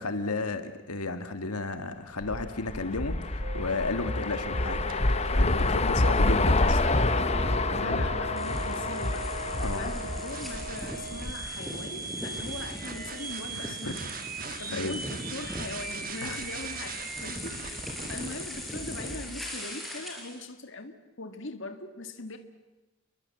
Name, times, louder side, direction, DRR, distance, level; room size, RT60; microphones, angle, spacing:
voice 1, 0.0-4.9 5.3-6.8 7.8-8.1 9.6-9.9 13.5-14.0 14.4-14.9 16.2-16.5, left 3 dB, 90° left, 9 dB, 1.7 m, -33 dB
sound 1, 2.2-11.5, left 2 dB, 30° left, 0.9 m, -27 dB
sound 2, 3.4-18.5, right 4 dB, 40° right, 1.5 m, -40 dB
voice 2, 6.2-9.3 9.7-14.1 14.6-17.8 18.1-22.4, left 2 dB, 55° left, 7 dB, 1.8 m, -41 dB
sound 3, 8.4-20.4, equal, ahead, 4.6 m, -40 dB
29.5 x 22.0 x 7.7 m, 1.1 s
head